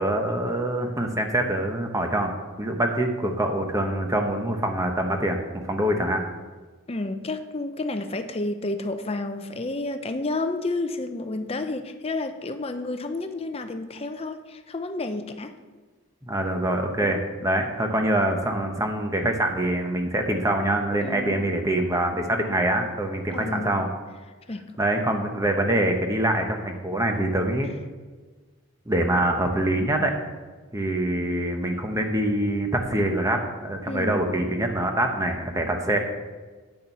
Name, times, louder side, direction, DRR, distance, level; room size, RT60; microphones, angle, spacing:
voice 1, 0.0-2.3 2.6-5.4 5.7-6.2 16.3-23.9 24.8-27.7 28.9-30.1 30.7-36.0, right 1 dB, 15° right, 0.8 m, -25 dB
voice 2, 6.9-15.6 17.0-17.2 21.0-21.5 22.3-22.5 23.3-23.8 24.5-24.7 33.9-34.3, left 2 dB, 25° left, 0.5 m, -31 dB
8.7 x 6.6 x 5.5 m
head